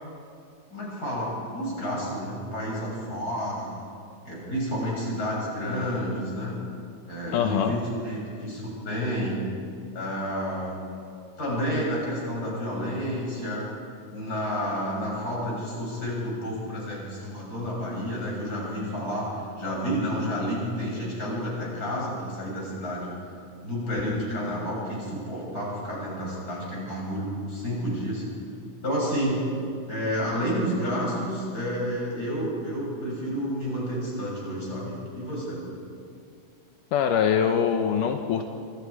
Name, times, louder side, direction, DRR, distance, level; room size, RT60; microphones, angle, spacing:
voice 1, 0.7-3.7 4.3-6.6 7.1-9.4 9.9-10.8 11.4-13.7 14.1-19.3 19.6-23.1 23.6-28.2 28.8-29.5 29.9-35.6, equal, 25° left, -4 dB, 7.5 m, -30 dB
voice 2, 7.3-7.7 36.9-38.5, left 8 dB, 80° left, 5 dB, 2.5 m, -23 dB
27.0 x 24.5 x 4.9 m, 2.4 s
omnidirectional pair, 3.7 m